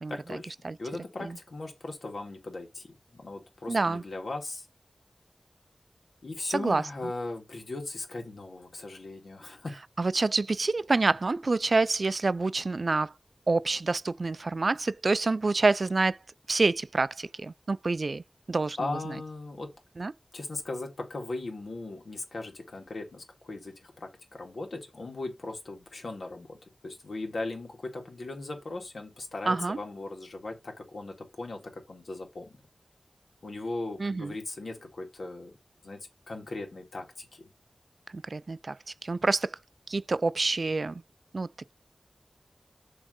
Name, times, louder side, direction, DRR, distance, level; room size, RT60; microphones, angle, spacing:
voice 1, 0.1-0.5 0.8-4.7 6.2-9.8 18.8-19.7 20.3-32.5 33.4-35.6 35.8-37.5, left 2 dB, 90° left, 2.0 m, -38 dB
voice 2, 3.7-4.0 6.5-6.8 10.0-13.1 13.5-16.2 16.5-19.1 20.0-20.1 29.5-29.8 34.0-34.3 38.1-39.6 39.9-41.0 41.3-41.7, right 3 dB, 65° right, 0.3 m, -27 dB
7.1 x 3.2 x 5.2 m
wide cardioid pair, 60°, 0 cm